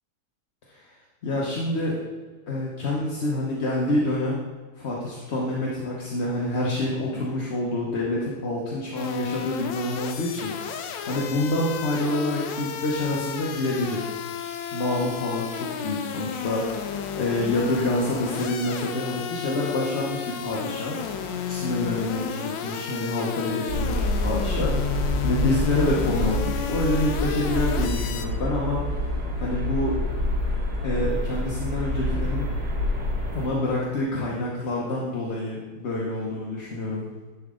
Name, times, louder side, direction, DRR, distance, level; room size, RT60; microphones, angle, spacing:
voice 1, 1.2-2.0 2.5-4.4 4.8-14.0 14.7-21.0 21.5-30.0 30.8-32.5 33.3-37.0, left 1 dB, 45° left, -4 dB, 1.0 m, -27 dB
sound 1, 9.0-28.3, left 8 dB, 80° left, 1.3 m, -32 dB
sound 2, 23.7-33.5, left 1 dB, 60° right, 2.0 m, -27 dB
10.5 x 4.2 x 3.7 m, 1.4 s
omnidirectional pair, 2.0 m